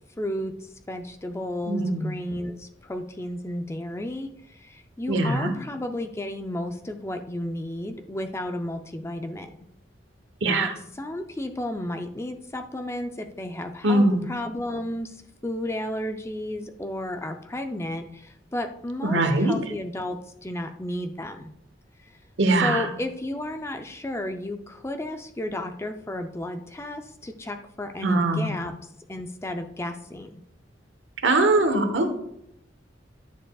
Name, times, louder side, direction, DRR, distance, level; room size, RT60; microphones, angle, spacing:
voice 1, 0.2-9.5 10.4-10.7 11.0-21.5 22.0-22.1 22.6-28.7 29.1-30.4, left 1 dB, 15° left, 7 dB, 0.5 m, -33 dB
voice 2, 1.6-2.1 5.1-5.5 10.4-10.7 13.8-14.3 19.0-19.5 22.4-22.9 28.0-28.5 31.2-32.1, right 2 dB, 85° right, 6 dB, 1.1 m, -21 dB
10.0 x 6.7 x 2.3 m, 0.78 s
head